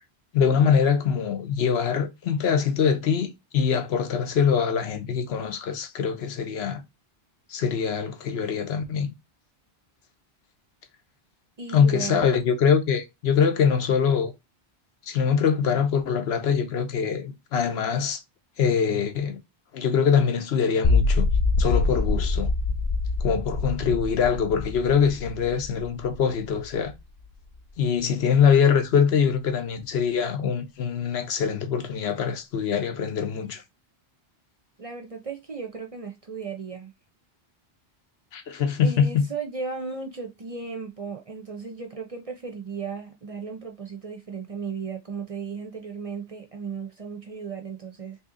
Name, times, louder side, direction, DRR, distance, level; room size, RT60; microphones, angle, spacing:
voice 1, 0.3-6.8 7.5-9.1 11.7-14.3 15.1-18.2 18.6-19.4 19.7-21.3 21.6-22.5 23.2-26.9 27.8-33.6 38.3-39.2, left 7 dB, 80° left, 1.0 m, -23 dB
voice 2, 11.6-12.4 34.8-36.9 38.8-48.2, right 5 dB, 45° right, 0.5 m, -35 dB
sound 1, 20.8-26.9, left 3 dB, 55° left, 0.4 m, -25 dB
2.9 x 2.7 x 3.6 m
omnidirectional pair, 1.1 m